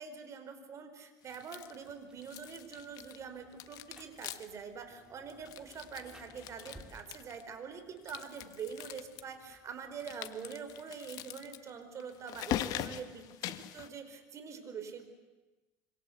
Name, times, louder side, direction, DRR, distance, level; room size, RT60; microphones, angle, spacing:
voice 1, 0.0-15.1, right 6 dB, 40° right, 8 dB, 5.0 m, -45 dB
sound 1, 1.3-1.9 2.2-3.3 3.5-4.6 4.9-5.0 5.3-7.5 8.0-9.2 10.0-13.9, left 12 dB, 60° left, 1.5 m, -42 dB
Rain, 1.6-10.6, right 1 dB, 10° right, 4.0 m, -61 dB
26.5 x 25.0 x 8.2 m, 1.2 s
supercardioid pair, 95°, 7 cm